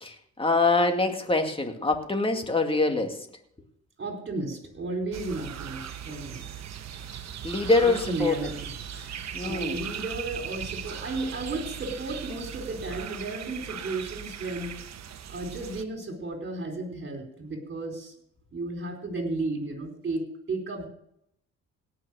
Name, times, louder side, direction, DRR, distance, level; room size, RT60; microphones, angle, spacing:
voice 1, 0.0-3.2 7.4-8.4 9.3-9.8, left 3 dB, 20° left, 4 dB, 2.2 m, -24 dB
voice 2, 4.0-6.4 7.8-14.7 15.3-18.1 18.5-20.9, right 2 dB, 40° right, 2 dB, 4.4 m, -34 dB
sound 1, 5.1-15.8, right 8 dB, 60° right, 1.2 m, -38 dB
17.5 x 6.2 x 6.4 m, 0.70 s
cardioid pair, 90°, 30 cm